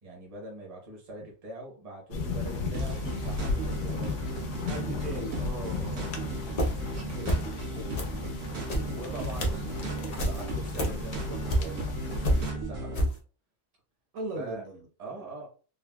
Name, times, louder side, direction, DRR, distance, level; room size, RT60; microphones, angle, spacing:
voice 1, 0.0-4.2 8.9-13.0 14.3-14.6 15.0-15.5, right 2 dB, 30° right, -1 dB, 0.8 m, -43 dB
sound 1, 2.1-12.5, left 4 dB, 65° left, 0.9 m, -36 dB
sound 2, 2.7-13.1, right 1 dB, 90° right, 1.3 m, -36 dB
voice 2, 4.7-6.2 6.8-8.4 14.1-14.9, right 2 dB, 70° right, 0 dB, 1.2 m, -40 dB
sound 3, 6.6-6.9 7.2-7.6 7.9-11.9 12.2-13.1, equal, 50° left, 0.5 m, -29 dB
3.6 x 2.2 x 2.2 m, 0.37 s
omnidirectional pair, 1.5 m